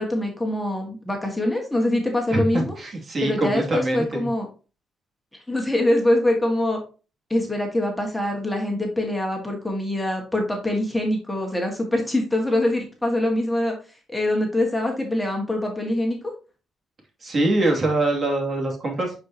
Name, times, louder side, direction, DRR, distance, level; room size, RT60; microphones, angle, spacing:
voice 1, 0.0-2.7 3.2-4.5 5.5-6.8 7.3-13.7 14.1-16.3, left 1 dB, 10° left, 1 dB, 1.9 m, -24 dB
voice 2, 2.3-4.3 17.2-19.1, right 2 dB, 40° right, 1 dB, 2.6 m, -24 dB
9.1 x 4.8 x 2.9 m, 0.34 s
cardioid pair, 90°, 0 cm